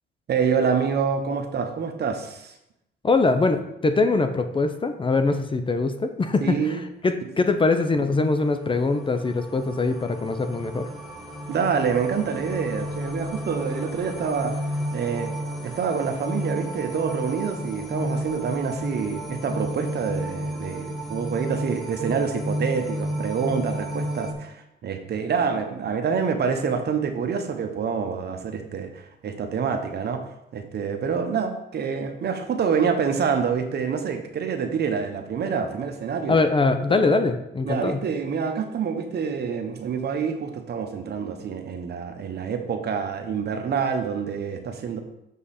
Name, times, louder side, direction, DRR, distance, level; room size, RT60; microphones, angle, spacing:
voice 1, 0.3-2.5 6.4-6.8 7.4-7.5 11.5-14.6 14.9-15.3 15.6-30.2 30.5-36.4 36.9-37.0 37.6-45.0, right 6 dB, 55° right, 6 dB, 1.0 m, -27 dB
voice 2, 3.0-10.9 36.3-38.0, left 3 dB, 25° left, 8 dB, 0.6 m, -23 dB
sound 1, 8.1-24.3, equal, ahead, 1.6 m, -32 dB
6.4 x 5.4 x 4.2 m, 0.85 s
cardioid pair, 90°, 20 cm